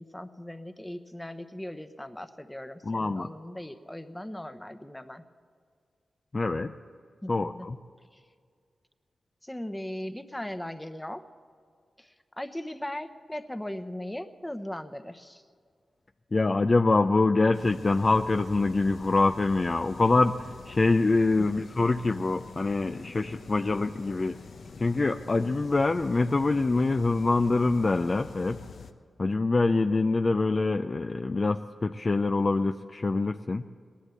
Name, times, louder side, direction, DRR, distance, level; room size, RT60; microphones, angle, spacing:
voice 1, 0.0-5.2 7.2-7.7 8.1-8.2 9.4-11.2 12.0-15.4, left 1 dB, 10° left, 10 dB, 0.9 m, -38 dB
voice 2, 2.8-3.3 6.3-6.7 7.3-7.8 16.3-24.4 24.8-28.6 29.2-33.6, left 3 dB, 45° left, 7 dB, 0.4 m, -25 dB
sound 1, 17.5-28.9, left 4 dB, 75° left, 0.8 m, -46 dB
18.0 x 11.5 x 7.1 m, 2.1 s
cardioid pair, 50°, 0 cm